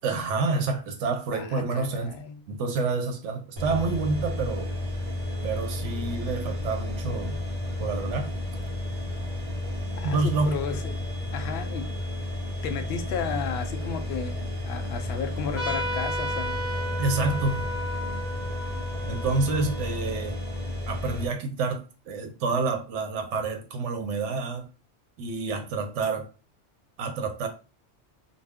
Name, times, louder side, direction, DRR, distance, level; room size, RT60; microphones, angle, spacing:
voice 1, 0.0-2.1 2.5-4.7 5.4-7.4 7.8-8.3 10.0-10.6 17.0-17.6 19.0-20.4 20.9-24.7 25.2-26.3 27.0-27.5, right 3 dB, 90° right, 0.9 m, -28 dB
voice 2, 1.3-2.4 9.9-11.0 11.3-11.9 12.6-16.6, left 6 dB, 65° left, 0.7 m, -33 dB
sound 1, 3.6-21.3, left 1 dB, 45° right, 1.1 m, -32 dB
Trumpet, 15.5-20.6, equal, 15° left, 0.5 m, -34 dB
2.5 x 2.0 x 3.4 m
omnidirectional pair, 1.2 m